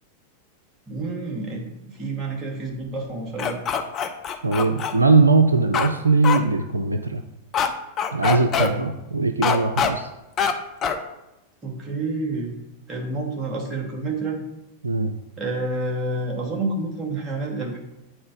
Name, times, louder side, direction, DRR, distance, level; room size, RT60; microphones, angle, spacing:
voice 1, 0.9-3.6 11.6-12.5 12.9-14.4 15.4-17.8, right 2 dB, 25° right, -1 dB, 2.4 m, -29 dB
sound 1, 3.4-4.9 5.7-5.9 6.2-6.4 7.5-7.7 8.0-8.7 9.4-9.9 10.4-10.5 10.8-11.0, left 7 dB, 30° left, 0.8 m, -23 dB
voice 2, 4.4-7.2 8.1-10.1 14.8-15.1, right 3 dB, 80° right, 7 dB, 0.5 m, -20 dB
8.8 x 4.4 x 5.1 m, 0.96 s
figure-of-eight pair, 90°, 0 cm